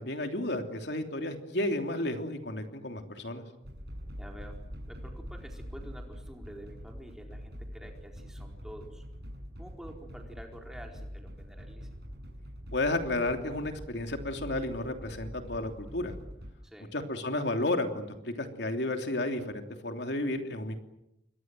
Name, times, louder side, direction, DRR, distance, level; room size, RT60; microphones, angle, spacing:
voice 1, 0.0-3.4 12.7-16.1 16.9-20.8, left 2 dB, 75° left, 5 dB, 3.1 m, -32 dB
sound 1, 3.6-16.5, equal, 65° right, 6.9 m, -44 dB
voice 2, 4.2-4.6 4.9-9.0 9.6-11.9 16.6-16.9, equal, 5° right, 2 dB, 4.4 m, -48 dB
29.0 x 23.0 x 7.7 m, 0.83 s
head